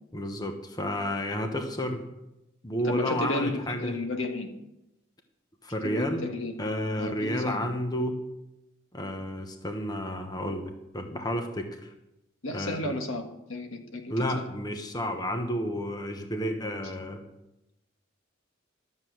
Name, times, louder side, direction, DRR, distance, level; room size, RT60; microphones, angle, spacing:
voice 1, 0.1-2.0 2.6-4.0 5.6-6.3 6.6-8.2 8.9-11.9 12.5-12.9 14.1-17.2, equal, 20° left, 5 dB, 1.0 m, -31 dB
voice 2, 2.8-4.5 5.8-6.6 7.0-7.7 12.4-14.1 16.8-16.9, left 2 dB, 85° left, 4 dB, 1.5 m, -33 dB
12.0 x 7.5 x 6.3 m, 0.90 s
head